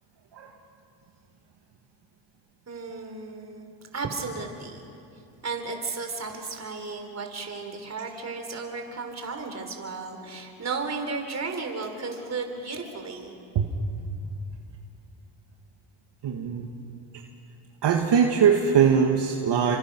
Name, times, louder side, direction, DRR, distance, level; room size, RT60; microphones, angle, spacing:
voice 1, 2.7-4.8 5.4-13.4, right 4 dB, 35° right, 4 dB, 4.0 m, -34 dB
voice 2, 16.2-16.7 17.8-19.8, right 7 dB, 55° right, 1 dB, 2.2 m, -21 dB
30.0 x 25.5 x 6.3 m, 2.6 s
cardioid pair, 110°, 48 cm